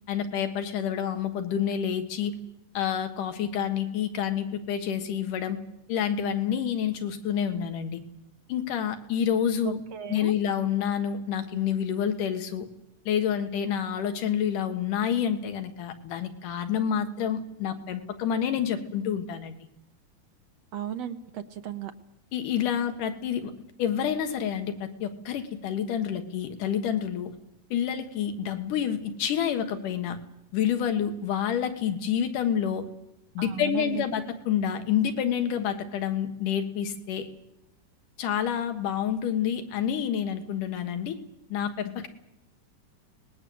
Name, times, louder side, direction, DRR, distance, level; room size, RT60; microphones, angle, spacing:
voice 1, 0.1-2.3 2.7-5.6 5.9-8.0 8.5-9.8 10.1-12.7 13.1-19.6 22.3-23.5 23.8-27.3 27.7-30.2 30.5-32.9 33.3-37.3 38.2-41.2 41.5-42.1, left 8 dB, 75° left, 7 dB, 3.1 m, -28 dB
voice 2, 9.7-10.3 20.7-21.9 33.4-34.0, right 10 dB, 65° right, 9 dB, 1.8 m, -35 dB
25.0 x 20.0 x 7.9 m, 0.88 s
omnidirectional pair, 3.7 m